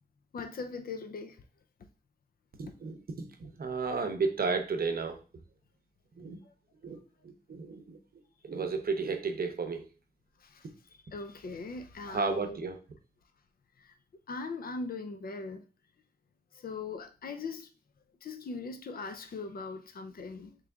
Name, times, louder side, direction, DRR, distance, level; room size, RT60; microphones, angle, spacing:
voice 1, 0.3-1.4 10.4-10.7 11.1-12.6 13.8-13.9 14.3-15.6 16.5-17.7 18.2-20.5, left 4 dB, 60° left, 0.5 m, -40 dB
voice 2, 2.6-5.2 6.2-6.4 6.8-8.0 8.4-9.8 10.6-10.7 12.0-12.8, right 4 dB, 60° right, 0.7 m, -33 dB
3.6 x 3.2 x 3.5 m
wide cardioid pair, 80°, 17 cm